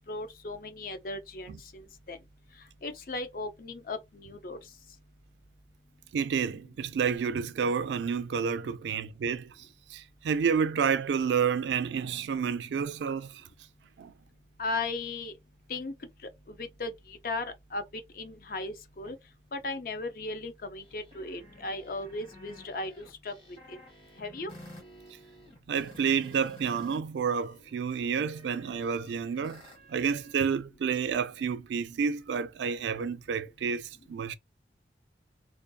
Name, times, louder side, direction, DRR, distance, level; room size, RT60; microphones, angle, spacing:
voice 1, 0.1-2.2 2.8-4.6 14.6-15.3 15.7-15.9 16.6-17.5 17.7-17.8 18.2-19.2 19.5-23.3 23.7-23.8 24.2-24.5, left 3 dB, 50° left, 0.5 m, -36 dB
voice 2, 6.1-13.4 14.0-14.1 25.7-29.6 29.9-34.3, right 6 dB, 80° right, 0.3 m, -30 dB
sound 1, 20.8-27.0 27.3-30.6, equal, 30° left, 0.9 m, -52 dB
2.5 x 2.3 x 2.6 m
head